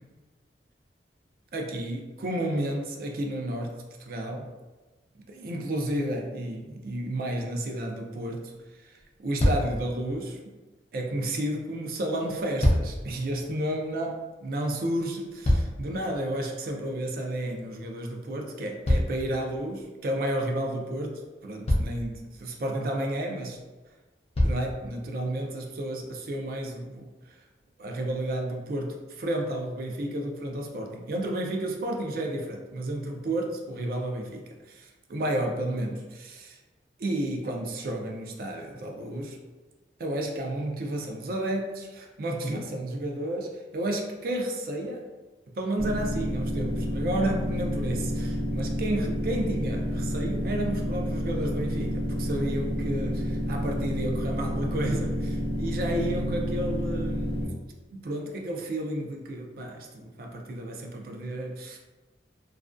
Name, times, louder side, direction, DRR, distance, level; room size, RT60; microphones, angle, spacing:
voice 1, 1.5-4.5 5.3-8.9 9.2-10.6 10.9-23.6 24.4-27.4 27.8-36.6 37.0-39.4 40.0-45.1 45.5-57.6 57.9-61.8, right 1 dB, 55° right, 2 dB, 0.4 m, -32 dB
sound 1, 9.0-9.1 9.4-9.9 12.2-13.1 15.0-16.0 18.8-19.8 21.0-21.1 21.6-22.1 23.5-23.6 24.3-24.7 25.5-25.6, left 1 dB, 35° left, 0.4 m, -25 dB
sound 2, 45.8-57.4, equal, 85° right, 0.7 m, -29 dB
2.3 x 2.2 x 2.4 m, 1.2 s
head